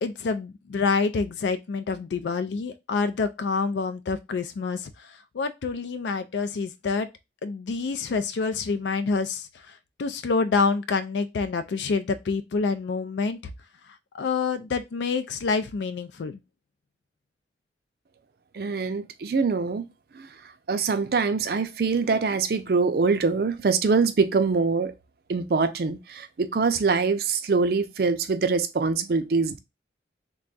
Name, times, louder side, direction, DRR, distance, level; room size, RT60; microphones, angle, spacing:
voice 1, 0.0-7.1 7.4-13.5 13.9-16.4, left 4 dB, 80° left, 0.4 m, -27 dB
voice 2, 18.5-19.8 20.1-20.3 20.7-24.9 25.3-29.6, right 4 dB, 55° right, 0.4 m, -24 dB
3.4 x 2.3 x 3.8 m
head